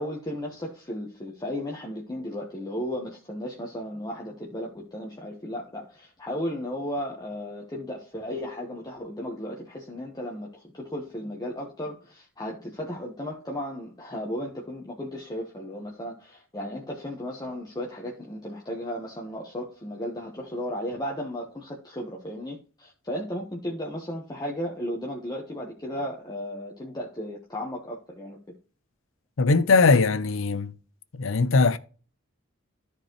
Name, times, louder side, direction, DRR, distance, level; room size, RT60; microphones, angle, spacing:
voice 1, 0.0-28.4, equal, 20° left, 1.2 m, -35 dB
voice 2, 29.4-30.7 31.2-31.8, left 4 dB, 70° left, 0.6 m, -20 dB
13.5 x 4.5 x 3.1 m
head